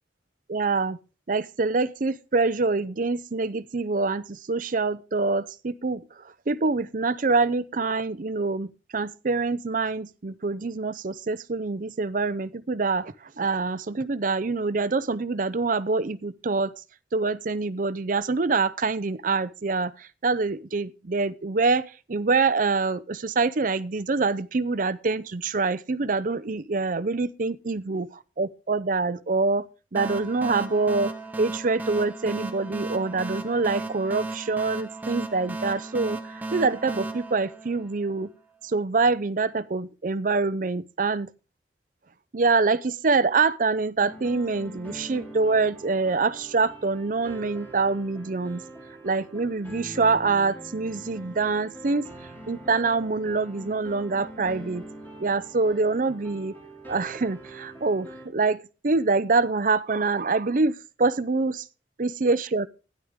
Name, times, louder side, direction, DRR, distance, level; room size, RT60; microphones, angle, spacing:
voice 1, 0.5-1.0 1.3-6.0 6.5-16.7 17.1-29.7 29.9-36.2 36.5-38.3 38.6-41.3 42.3-48.6 49.0-52.0 52.5-54.8 55.2-56.5 56.9-61.6 62.0-62.7, right 3 dB, 50° right, 0.6 m, -25 dB
sound 1, 29.9-38.3, right 2 dB, 10° right, 1.0 m, -35 dB
sound 2, 44.0-58.3, right 1 dB, 10° left, 4.4 m, -43 dB
12.5 x 10.5 x 3.6 m
head